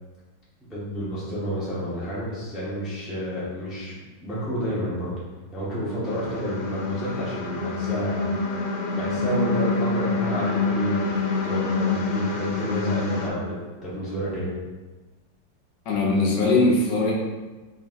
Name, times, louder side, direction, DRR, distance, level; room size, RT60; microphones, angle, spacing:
voice 1, 0.7-4.0 4.2-5.1 5.5-8.2 9.0-14.5, equal, ahead, -9 dB, 0.7 m, -30 dB
sound 1, 6.0-13.3, left 3 dB, 85° left, 1.4 m, -26 dB
voice 2, 15.9-17.1, left 2 dB, 70° left, -3 dB, 1.3 m, -20 dB
3.8 x 3.7 x 2.5 m, 1.2 s
omnidirectional pair, 2.1 m